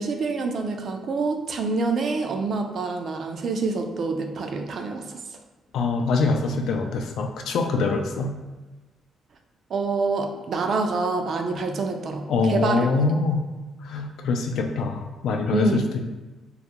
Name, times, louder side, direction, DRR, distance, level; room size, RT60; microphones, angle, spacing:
voice 1, 0.0-5.2 9.7-12.9 15.5-15.8, right 3 dB, 55° right, 4 dB, 0.3 m, -26 dB
voice 2, 5.7-8.3 12.3-13.4 13.8-15.8, left 3 dB, 75° left, 3 dB, 0.3 m, -24 dB
2.3 x 2.1 x 2.8 m, 1.2 s
cardioid pair, 90°, 0 cm